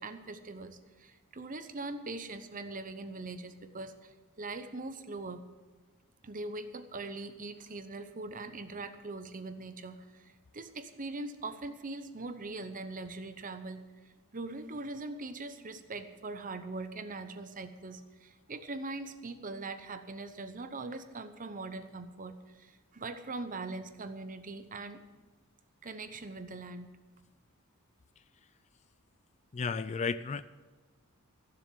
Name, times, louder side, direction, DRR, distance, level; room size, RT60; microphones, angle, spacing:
voice 1, 0.0-5.5 6.2-13.9 14.3-25.0 25.8-27.0, right 3 dB, 35° right, 10 dB, 0.9 m, -41 dB
voice 2, 29.5-30.4, left 5 dB, 30° left, 15 dB, 0.3 m, -33 dB
15.0 x 7.2 x 7.4 m, 1.3 s
head